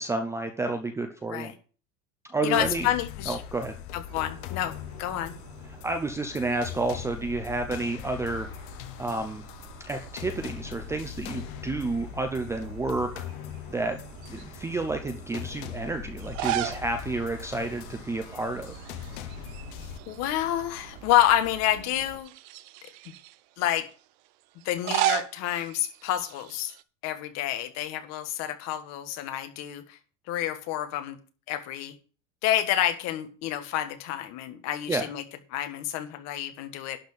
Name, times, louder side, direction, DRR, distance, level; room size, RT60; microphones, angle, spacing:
voice 1, 0.0-1.5 2.3-2.9 3.3-3.7 5.8-8.5 9.0-9.4 9.8-13.2 13.7-14.0 14.3-18.8 34.9-35.1, right 2 dB, 10° right, 5 dB, 0.5 m, -30 dB
voice 2, 2.4-3.4 3.9-4.7 5.0-5.3 20.1-22.3 22.8-23.1 23.6-23.9 24.6-26.7 27.0-30.0 30.3-31.2 31.5-32.0 32.4-35.2 35.5-37.0, left 12 dB, 45° left, 8 dB, 1.6 m, -28 dB
sound 1, 2.5-20.0, left 10 dB, 60° left, 1.1 m, -41 dB
sound 2, 4.1-22.2, right 5 dB, 75° right, 2.6 m, -48 dB
sound 3, 16.2-16.9 17.2-17.3 18.7-19.2 19.5-20.6 21.2-21.3 22.2-23.3 24.6-26.8, right 13 dB, 50° right, 0.7 m, -32 dB
11.5 x 4.4 x 7.9 m, 0.39 s
supercardioid pair, 170°, 38 cm